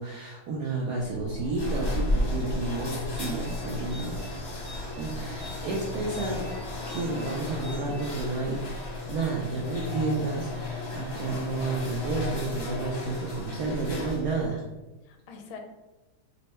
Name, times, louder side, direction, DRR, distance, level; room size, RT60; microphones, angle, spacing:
voice 1, 0.0-4.2 5.0-6.4 6.9-8.6 9.1-14.6, right 3 dB, 85° right, -3 dB, 0.9 m, -31 dB
sound 1, 1.0-14.5, left 2 dB, 50° left, 0.8 m, -34 dB
sound 2, 1.1-6.8, equal, 65° right, 1.4 m, -44 dB
sound 3, 3.2-8.9, equal, 50° right, 1.2 m, -49 dB
voice 2, 11.2-11.9 15.1-15.6, left 5 dB, 80° left, 3 dB, 1.4 m, -46 dB
4.3 x 2.1 x 4.2 m, 1.1 s
omnidirectional pair, 2.4 m